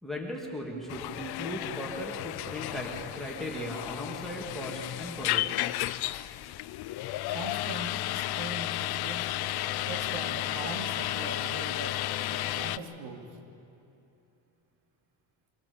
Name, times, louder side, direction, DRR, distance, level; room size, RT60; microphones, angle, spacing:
voice 1, 0.0-5.6, equal, ahead, -1 dB, 2.3 m, -37 dB
sound 1, 0.9-12.8, left 15 dB, 50° left, 0.5 m, -33 dB
voice 2, 7.3-9.3 9.8-12.0 12.3-13.4, right 3 dB, 80° right, 2 dB, 2.8 m, -41 dB
Wind instrument woodwind instrument, 9.3-12.8, equal, 30° right, 4.9 m, -48 dB
25.5 x 17.0 x 7.1 m, 2.9 s
cardioid pair, 150°, 49 cm